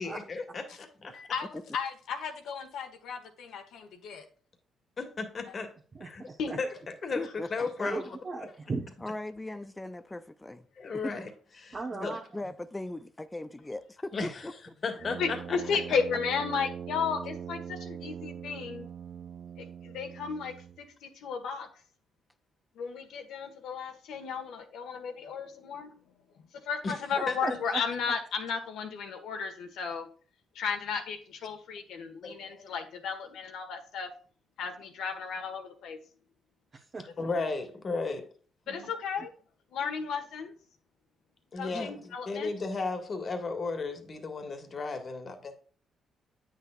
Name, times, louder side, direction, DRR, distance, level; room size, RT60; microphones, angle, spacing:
voice 1, 0.0-1.1 5.0-5.7 6.0-6.3 6.6-6.7 7.0-7.2 7.5-8.1 10.8-11.3 11.6-11.8 12.0-12.1 14.1-14.4 14.8-15.6 26.8-26.9 27.3-27.6 32.2-32.6 37.2-38.3 41.5-41.9 42.3-45.6, left 3 dB, 45° left, 6 dB, 1.7 m, -34 dB
voice 2, 1.1-4.2 6.4-6.5 10.8-11.0 15.2-18.9 19.6-21.7 22.7-25.9 26.6-30.1 30.5-34.1 34.6-36.0 37.3-37.4 38.7-39.3 39.7-40.5 41.5-42.5, left 6 dB, 80° left, 6 dB, 1.5 m, -34 dB
voice 3, 6.0-6.6 7.8-8.9 11.7-12.4 27.4-27.8 36.7-37.3 38.7-38.9, right 3 dB, 35° right, 0 dB, 1.1 m, -37 dB
voice 4, 7.2-8.0 9.0-10.6 11.0-11.1 11.9-14.5 41.7-42.2, left 2 dB, 15° left, 12 dB, 0.6 m, -39 dB
Brass instrument, 15.0-20.9, right 8 dB, 55° right, 0.4 m, -42 dB
9.0 x 6.6 x 2.4 m, 0.42 s
cardioid pair, 90°, 0 cm